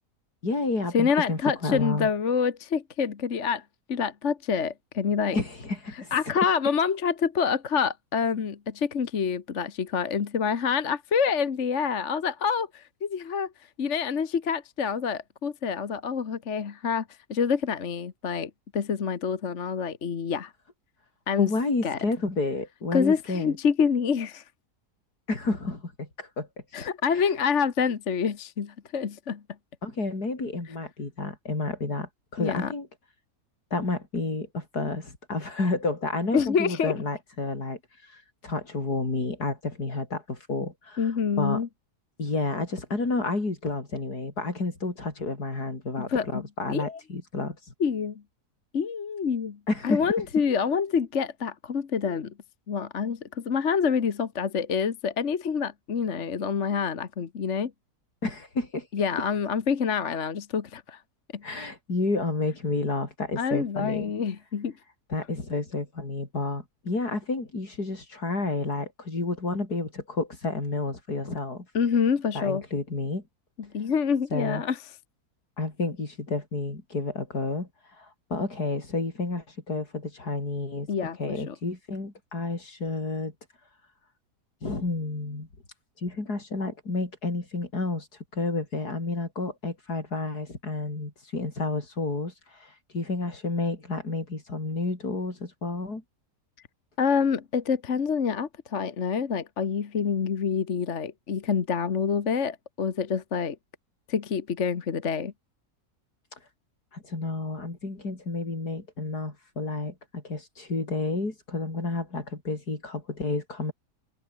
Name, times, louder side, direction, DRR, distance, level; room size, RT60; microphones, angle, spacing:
voice 1, 0.4-2.1 5.3-6.2 21.4-23.6 25.3-26.5 26.7-27.3 29.8-32.9 33.7-37.8 38.1-41.1 41.4-41.6 42.2-47.6 49.7-50.1 58.2-58.9 61.4-64.1 65.1-71.7 72.3-73.2 74.3-74.6 75.6-77.7 78.0-80.9 81.2-83.3 84.6-85.5 86.0-88.1 88.3-96.0 106.9-113.7, left 3 dB, 80° left, 5.4 m, -30 dB
voice 2, 0.9-3.6 3.9-5.4 6.1-13.5 13.8-20.5 21.3-21.5 21.8-22.0 22.9-24.4 26.7-29.4 32.4-32.7 36.3-37.0 41.0-41.7 46.0-47.0 47.8-48.2 48.7-49.6 49.8-52.3 52.7-57.7 58.9-61.0 61.3-61.4 63.4-64.7 71.7-72.6 73.7-74.8 80.9-81.2 81.5-81.6 97.0-103.6 104.1-105.3, left 6 dB, 50° left, 1.6 m, -27 dB
omnidirectional pair, 1.7 m